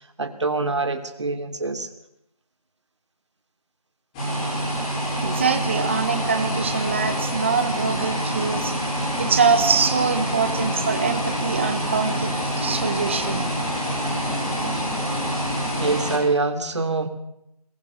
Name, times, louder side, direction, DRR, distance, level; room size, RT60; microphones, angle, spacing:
voice 1, 0.2-1.9 15.8-17.1, right 3 dB, 45° right, 7 dB, 2.9 m, -25 dB
sound 1, 4.1-16.2, equal, 10° left, 5.9 m, -26 dB
voice 2, 5.2-8.7 9.2-13.5, right 5 dB, 20° right, 9 dB, 1.5 m, -24 dB
25.0 x 21.5 x 6.7 m, 0.82 s
figure-of-eight pair, 170°, 20 cm